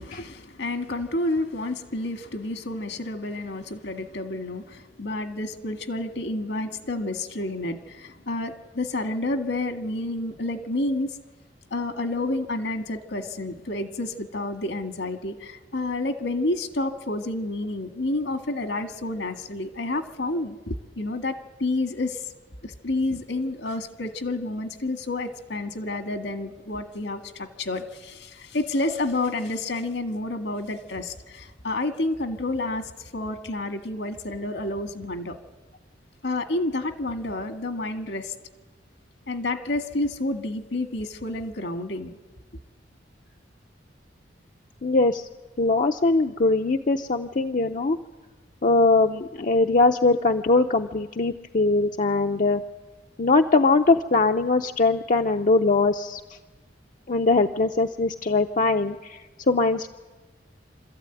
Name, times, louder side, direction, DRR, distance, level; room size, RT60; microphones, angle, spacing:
voice 1, 0.0-11.1 11.7-22.3 22.6-35.4 36.2-38.3 39.3-42.2, left 2 dB, 80° left, 7 dB, 1.8 m, -29 dB
voice 2, 44.8-45.3 45.6-48.0 48.6-52.6 53.2-56.2 57.1-59.2 59.5-59.9, left 3 dB, 45° left, 5 dB, 0.6 m, -21 dB
26.0 x 13.5 x 9.1 m, 1.3 s
head